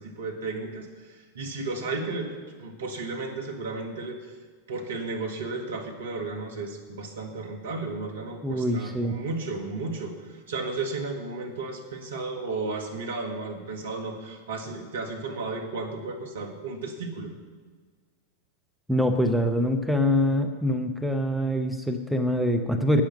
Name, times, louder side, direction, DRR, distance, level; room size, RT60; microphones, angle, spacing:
voice 1, 0.0-4.2 4.7-17.3, right 3 dB, 65° right, 2 dB, 1.8 m, -34 dB
voice 2, 8.4-9.2 18.9-23.0, equal, ahead, 4 dB, 0.8 m, -24 dB
11.0 x 8.7 x 6.3 m, 1.6 s
figure-of-eight pair, 90°, 0 cm